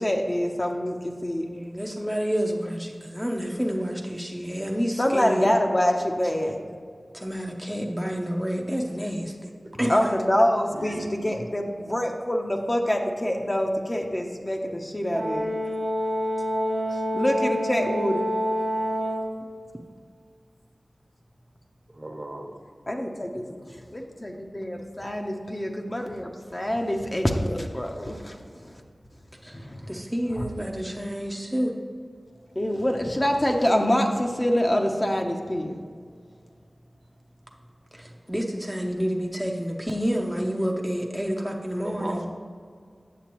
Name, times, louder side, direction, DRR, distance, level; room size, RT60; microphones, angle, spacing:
voice 1, 0.0-1.4 5.0-6.6 9.9-15.5 16.9-18.2 22.9-23.4 23.9-28.8 29.5-29.8 30.4-30.5 32.6-35.8, equal, 30° left, 2 dB, 0.7 m, -26 dB
voice 2, 1.3-5.5 7.1-9.5 9.8-10.1 29.4-31.7 37.9-42.3, equal, 5° right, 0 dB, 0.6 m, -29 dB
voice 3, 10.7-11.4 21.9-22.5 23.2-23.8 30.8-30.9 41.8-42.3, right 1 dB, 45° right, 2 dB, 1.0 m, -37 dB
Brass instrument, 15.1-19.4, equal, 60° right, 0.9 m, -27 dB
8.4 x 6.7 x 3.0 m, 2.1 s
wide cardioid pair, 45°, 0 cm